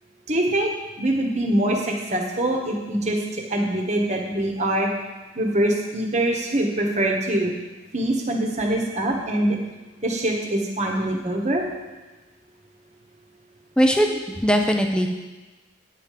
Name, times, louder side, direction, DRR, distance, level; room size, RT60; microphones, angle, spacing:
voice 1, 0.3-0.7 1.0-4.9 5.3-7.5 7.9-9.6 10.0-11.7, right 1 dB, 35° right, 1 dB, 1.3 m, -23 dB
voice 2, 13.8-15.1, equal, 5° left, 3 dB, 0.7 m, -20 dB
9.5 x 5.2 x 7.5 m, 1.2 s
head